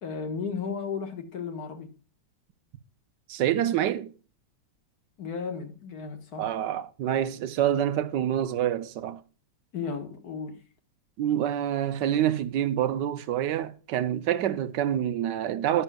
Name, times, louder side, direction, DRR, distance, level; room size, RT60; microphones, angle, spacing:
voice 1, 0.0-1.9 5.2-6.5 9.7-10.6, left 5 dB, 60° left, 1.9 m, -34 dB
voice 2, 3.3-4.1 6.4-9.2 11.2-15.8, right 11 dB, 75° right, 1.3 m, -27 dB
11.0 x 11.0 x 2.3 m
omnidirectional pair, 2.0 m